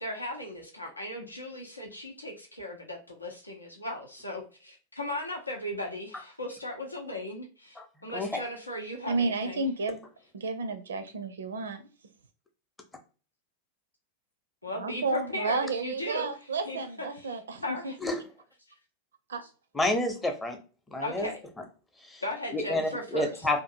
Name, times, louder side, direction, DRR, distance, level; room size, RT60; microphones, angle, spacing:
voice 1, 0.0-9.6 14.6-16.3 16.6-16.8 17.1-18.0 21.0-21.4 22.2-23.5, left 1 dB, 85° left, 0 dB, 0.6 m, -37 dB
voice 2, 9.1-10.0 10.3-11.8 14.7-17.9 19.3-19.4, right 3 dB, 65° right, 9 dB, 0.4 m, -31 dB
voice 3, 19.7-20.6 20.9-21.3 22.1-22.2 22.5-23.6, left 1 dB, 10° left, 4 dB, 0.7 m, -29 dB
2.6 x 2.5 x 2.5 m, 0.36 s
figure-of-eight pair, 90°, 0 cm